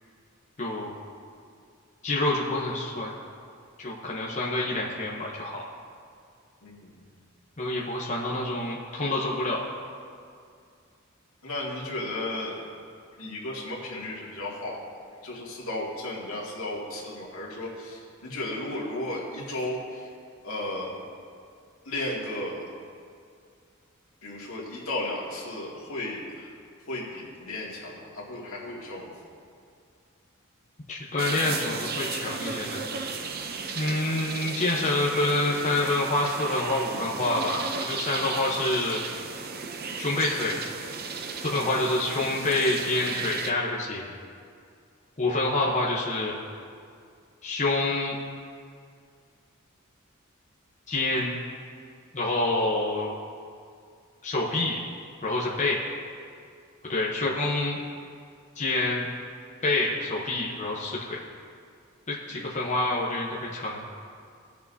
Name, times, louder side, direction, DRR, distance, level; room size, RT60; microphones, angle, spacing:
voice 1, 0.6-1.0 2.0-3.1 3.8-5.6 7.6-9.6 30.9-33.0 33.7-39.0 40.0-40.6 41.4-44.1 45.2-46.4 47.4-48.1 50.9-51.4 52.1-53.1 54.2-54.8 55.2-55.8 56.9-57.8 58.6-59.1 59.6-61.2 62.1-63.8, left 2 dB, 35° left, -4 dB, 0.9 m, -27 dB
voice 2, 6.6-7.0 11.4-12.6 13.2-14.8 15.2-20.1 20.4-20.9 21.8-22.7 24.2-26.5 26.9-29.2 57.2-57.4 60.9-61.1 62.3-62.6, left 1 dB, 85° left, -4 dB, 2.2 m, -34 dB
sound 1, 31.2-43.5, right 5 dB, 50° right, 0.6 m, -35 dB
18.5 x 6.7 x 2.7 m, 2.3 s
head